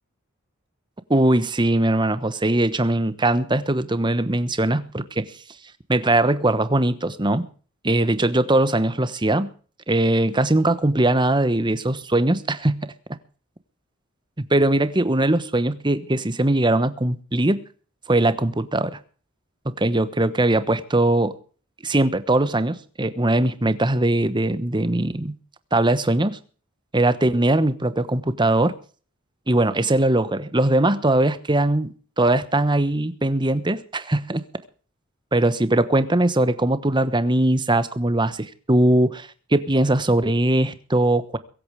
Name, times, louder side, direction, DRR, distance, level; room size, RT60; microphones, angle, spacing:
voice 1, 1.1-5.3 5.9-7.5 7.8-9.5 9.9-12.9 14.4-17.7 18.1-19.0 19.6-21.4 21.8-25.3 25.7-26.4 26.9-28.7 29.5-34.4 35.3-41.4, right 1 dB, 20° right, 1.1 m, -21 dB
23.0 x 8.7 x 4.9 m
head